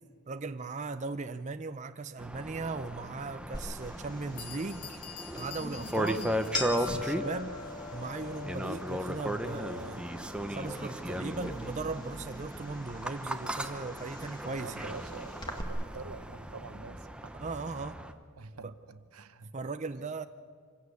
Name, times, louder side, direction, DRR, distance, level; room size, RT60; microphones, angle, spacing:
voice 1, 0.3-5.0 5.4-6.3 6.7-7.6 7.9-10.1 10.5-14.9 17.3-18.0 18.6-18.7 19.5-20.2, right 3 dB, 30° right, 9 dB, 0.5 m, -38 dB
sound 1, 2.2-18.1, equal, 5° right, 0.8 m, -37 dB
sound 2, 3.5-15.6, left 3 dB, 20° left, 1.9 m, -43 dB
Bell, 4.0-4.1 4.4-7.2, left 9 dB, 90° left, 1.1 m, -47 dB
voice 2, 14.6-17.3 18.4-19.5, right 4 dB, 80° right, 11 dB, 1.0 m, -46 dB
25.5 x 16.0 x 8.3 m, 2.1 s
head